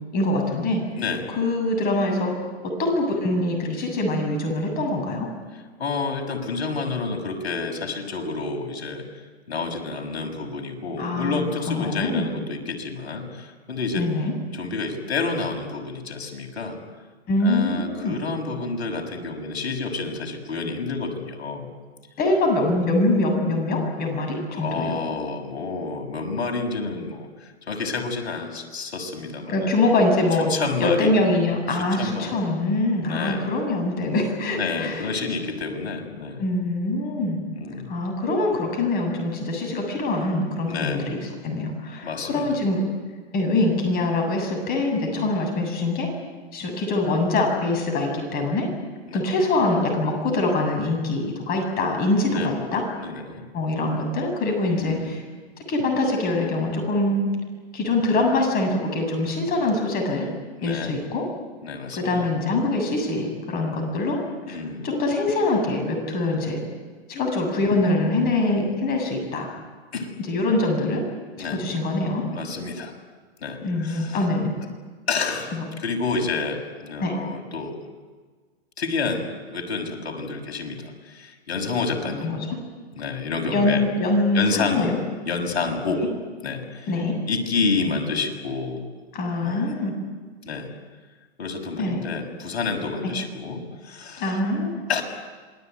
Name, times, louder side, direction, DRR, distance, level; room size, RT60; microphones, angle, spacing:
voice 1, 0.1-0.8 1.3-5.3 11.0-12.3 13.9-14.3 17.3-18.2 22.2-24.9 29.5-30.5 30.8-35.1 36.4-37.4 37.9-42.8 43.3-46.1 46.5-48.7 49.1-52.8 53.5-55.2 55.7-57.2 57.7-60.3 60.6-61.2 62.0-64.2 64.5-64.6 64.8-66.6 67.1-69.5 70.3-71.0 71.6-72.3 73.6-74.5 75.6-75.7 77.0-77.1 82.2-82.4 83.5-85.0 86.9-87.2 89.1-89.9 91.8-92.0 93.0-93.1 94.2-94.8, left 2 dB, 25° left, 3 dB, 7.6 m, -24 dB
voice 2, 0.9-1.3 5.8-9.1 9.5-14.1 14.5-16.8 17.4-21.7 24.5-29.7 30.5-31.1 31.7-32.3 33.0-33.5 34.5-36.4 37.6-37.9 40.7-41.1 42.0-42.6 45.0-45.4 49.1-49.2 52.3-52.5 53.0-53.4 54.7-55.2 60.6-60.9 61.6-62.3 64.5-64.9 69.9-70.1 71.4-71.6 72.3-72.9 73.4-74.3 75.1-77.8 78.8-82.4 82.9-83.8 84.3-84.9 85.3-86.0 86.4-86.9 87.3-88.8 89.4-89.7 90.4-90.7 91.4-94.4 94.9-95.0, left 4 dB, 70° left, 3 dB, 6.6 m, -29 dB
27.5 x 21.5 x 9.4 m, 1.4 s
hypercardioid pair, 130°, 33 cm